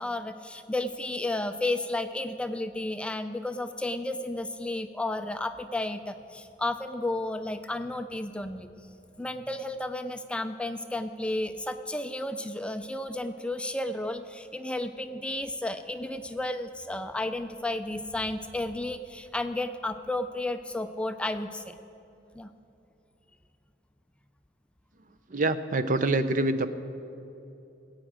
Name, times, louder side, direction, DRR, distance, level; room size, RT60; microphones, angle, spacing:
voice 1, 0.0-8.7 9.2-21.7 22.3-22.5, left 2 dB, 5° left, 9 dB, 0.3 m, -32 dB
voice 2, 25.3-26.7, right 2 dB, 45° right, 11 dB, 0.5 m, -25 dB
19.0 x 9.0 x 5.0 m, 2.9 s
head